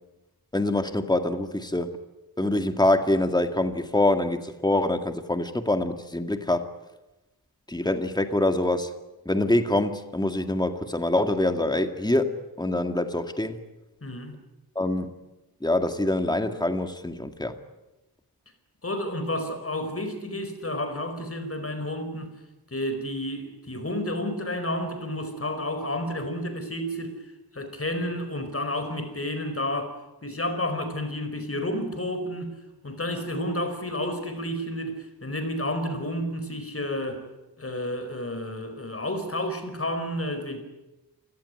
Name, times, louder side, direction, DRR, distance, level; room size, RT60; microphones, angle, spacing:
voice 1, 0.5-2.0 2.4-6.7 7.7-8.9 9.3-13.6 14.8-15.1 15.6-17.6, left 1 dB, 10° left, 2.0 m, -25 dB
voice 2, 14.0-14.4 18.8-22.3 22.7-27.1 27.5-29.9 30.2-32.5 32.8-37.2 37.6-40.6, left 1 dB, 35° left, 5.0 m, -31 dB
29.0 x 18.0 x 9.8 m
wide cardioid pair, 90°, 38 cm